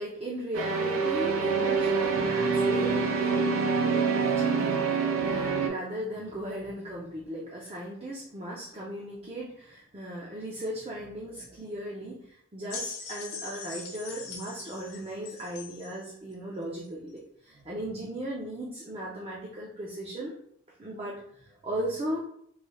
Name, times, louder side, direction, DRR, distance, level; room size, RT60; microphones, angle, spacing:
voice 1, 0.0-20.3 20.8-22.2, right 1 dB, 30° right, -5 dB, 0.5 m, -37 dB
sound 1, 0.5-5.7, right 5 dB, 85° right, 0.5 m, -26 dB
sound 2, 12.7-16.0 16.8-16.9, left 5 dB, 85° left, 0.9 m, -41 dB
3.1 x 3.1 x 2.2 m, 0.68 s
head